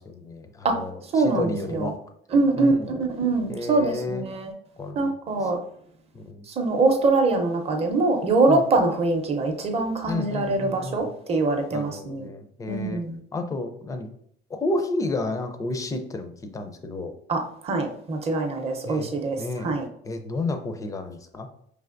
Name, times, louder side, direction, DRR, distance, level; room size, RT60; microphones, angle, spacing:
voice 1, 0.0-2.0 2.6-2.9 3.5-4.3 4.8-5.1 5.4-5.5 6.1-6.5 8.5-8.6 10.1-11.1 11.7-13.0 13.3-14.1 14.5-17.1 18.8-19.8 20.0-21.5, left 2 dB, 15° left, 6 dB, 0.4 m, -31 dB
voice 2, 1.1-1.9 2.3-4.5 5.0-5.6 6.6-12.3 12.7-13.2 17.3-19.9, right 3 dB, 30° right, 3 dB, 0.6 m, -23 dB
5.1 x 3.3 x 2.5 m, 0.67 s
cardioid pair, 160°, 21 cm